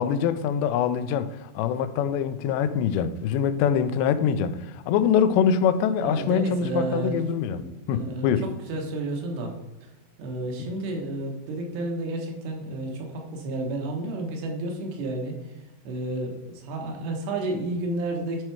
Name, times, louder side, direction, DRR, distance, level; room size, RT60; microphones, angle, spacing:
voice 1, 0.0-8.4 10.6-10.7, left 7 dB, 90° left, 11 dB, 2.8 m, -24 dB
voice 2, 6.0-7.2 7.5-9.5 10.2-15.5 15.8-18.4, right 2 dB, 75° right, 1 dB, 3.3 m, -31 dB
11.5 x 4.4 x 4.6 m, 1.0 s
omnidirectional pair, 5.0 m